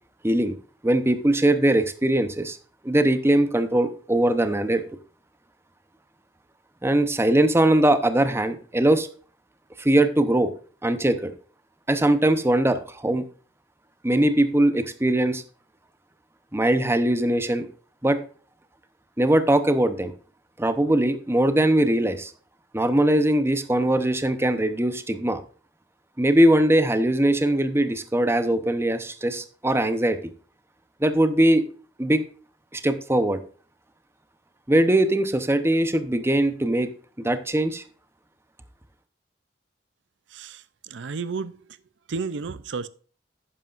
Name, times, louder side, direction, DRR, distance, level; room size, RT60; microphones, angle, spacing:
voice 1, 0.2-0.5 0.8-2.6 2.8-4.8 6.8-9.1 9.8-10.5 10.8-11.3 11.9-13.2 14.0-15.4 16.5-17.7 18.0-18.2 19.2-20.1 20.6-22.3 22.7-25.4 26.2-30.2 31.0-31.6 32.0-32.2 32.7-33.4 34.7-36.9 37.2-37.8, right 1 dB, 15° right, 0.8 m, -21 dB
voice 2, 40.3-41.6 42.1-42.9, right 4 dB, 80° right, 0.5 m, -32 dB
11.5 x 9.2 x 2.5 m
head